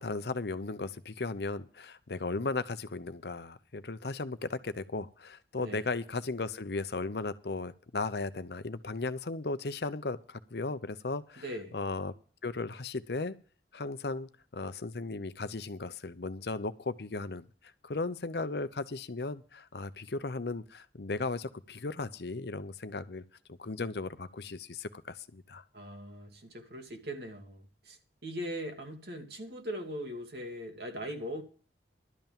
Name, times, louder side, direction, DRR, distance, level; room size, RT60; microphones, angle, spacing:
voice 1, 0.0-11.4 11.7-12.1 12.4-13.3 13.7-17.5 17.8-23.2 23.6-25.6, left 3 dB, 65° left, 0.8 m, -36 dB
voice 2, 11.4-11.8 25.7-31.4, equal, 65° right, 2.3 m, -40 dB
12.0 x 5.7 x 8.9 m
head